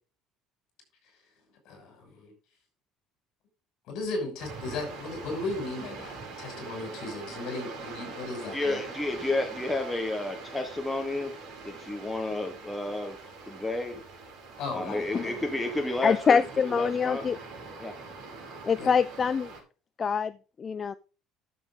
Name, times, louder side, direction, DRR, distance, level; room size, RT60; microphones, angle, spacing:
voice 1, 1.6-2.3 3.9-8.8 14.6-15.4 18.8-18.9, left 2 dB, 55° left, 6.3 m, -36 dB
sound 1, 4.4-19.6, right 4 dB, 55° right, 5.0 m, -43 dB
voice 2, 8.5-11.4 11.6-13.2 13.5-14.0 14.7-17.3 17.8-17.9, left 2 dB, 5° left, 1.1 m, -31 dB
voice 3, 16.0-17.4 18.6-19.5 20.0-20.3 20.6-20.9, left 6 dB, 20° left, 0.4 m, -24 dB
12.5 x 7.1 x 3.8 m
cardioid pair, 175°, 0 cm